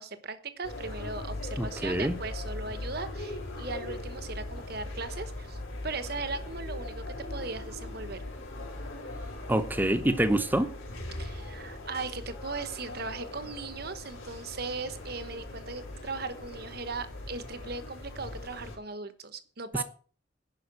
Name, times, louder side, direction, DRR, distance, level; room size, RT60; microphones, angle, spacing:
voice 1, 0.0-7.0 7.3-8.2 11.2-19.8, right 3 dB, 50° right, 1.1 m, -38 dB
sound 1, 0.6-18.8, left 1 dB, 90° left, 4.4 m, -40 dB
voice 2, 1.6-2.2 9.5-10.7, right 1 dB, 10° right, 0.7 m, -26 dB
11.0 x 5.6 x 8.2 m
head